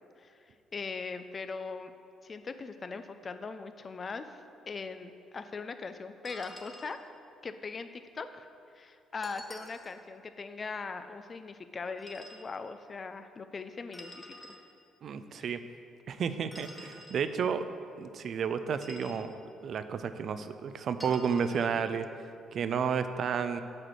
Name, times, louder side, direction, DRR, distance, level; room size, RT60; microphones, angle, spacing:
voice 1, 0.2-1.9 2.2-4.3 4.7-7.0 7.4-8.5 8.7-14.4 15.3-15.6, left 4 dB, 40° left, 9 dB, 0.6 m, -40 dB
sound 1, 6.2-7.0 9.2-10.0 12.0-12.5 13.9-14.6 16.5-17.2 18.7-19.3 21.0-21.7, left 1 dB, 10° left, 1.9 m, -48 dB
voice 2, 15.0-15.6 16.1-17.7 18.0-22.1 22.5-23.6, right 6 dB, 60° right, 10 dB, 0.5 m, -32 dB
8.5 x 5.0 x 6.3 m, 2.5 s
hypercardioid pair, 50°, 0 cm